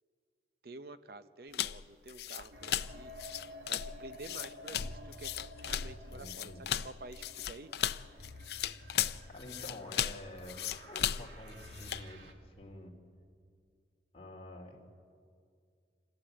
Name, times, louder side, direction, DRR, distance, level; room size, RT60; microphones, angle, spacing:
voice 1, 0.6-3.1 3.6-5.3 5.6-7.7, right 2 dB, 55° right, 12 dB, 0.7 m, -50 dB
sound 1, 1.5-12.1, left 10 dB, 65° left, 0.5 m, -36 dB
sound 2, 2.5-12.3, equal, 85° right, 2.1 m, -51 dB
voice 2, 6.1-6.7 9.3-12.9 14.1-14.8, left 1 dB, 35° left, 1 dB, 2.9 m, -48 dB
27.0 x 15.0 x 8.8 m, 2.3 s
head